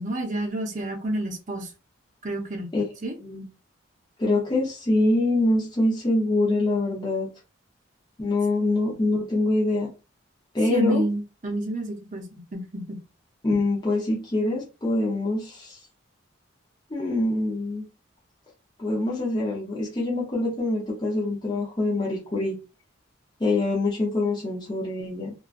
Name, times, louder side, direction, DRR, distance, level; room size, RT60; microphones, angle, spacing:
voice 1, 0.0-1.7 2.2-2.7 3.0-3.1 8.9-9.0 10.7-13.0, right 1 dB, 40° right, 0.6 m, -29 dB
voice 2, 4.2-7.3 8.2-9.9 10.5-11.0 13.4-15.8 16.9-17.8 18.8-22.6 23.4-25.3, left 2 dB, 20° left, 0.6 m, -24 dB
2.7 x 2.3 x 2.4 m
head